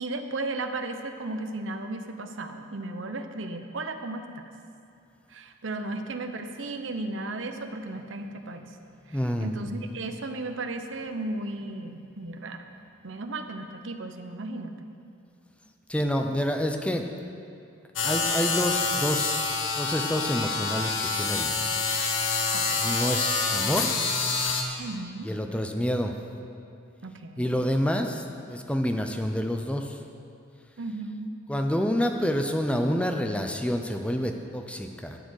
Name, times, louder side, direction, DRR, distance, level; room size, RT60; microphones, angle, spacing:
voice 1, 0.0-4.5 5.3-8.7 9.1-12.6 13.0-14.8 22.5-22.8 24.8-25.3 27.0-27.5 30.8-31.3, right 2 dB, 70° right, 7 dB, 0.8 m, -35 dB
voice 2, 9.1-9.5 15.9-17.1 18.0-21.7 22.8-23.9 25.2-26.1 27.4-30.0 31.5-35.2, equal, 5° left, 5 dB, 0.6 m, -28 dB
sound 1, 18.0-24.6, left 4 dB, 80° left, 1.2 m, -27 dB
12.0 x 7.7 x 6.4 m, 2.5 s
head